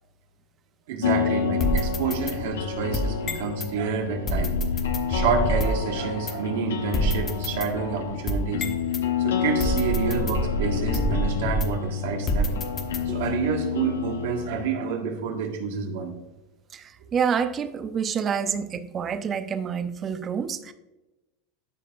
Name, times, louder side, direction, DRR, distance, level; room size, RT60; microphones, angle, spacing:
voice 1, 0.9-4.6 5.1-8.7 9.2-12.5 13.0-16.1, right 5 dB, 75° right, 2 dB, 1.7 m, -29 dB
sound 1, 1.0-14.7, left 6 dB, 85° left, 0.8 m, -29 dB
sound 2, 1.6-3.7 4.3-5.9 6.3-6.4 6.9-9.0 9.6-11.9 12.3-13.4, left 1 dB, 35° left, 1.0 m, -27 dB
voice 2, 16.7-20.7, right 7 dB, 30° right, 10 dB, 0.7 m, -28 dB
12.5 x 5.1 x 2.5 m, 1.0 s
hypercardioid pair, 110°, 0 cm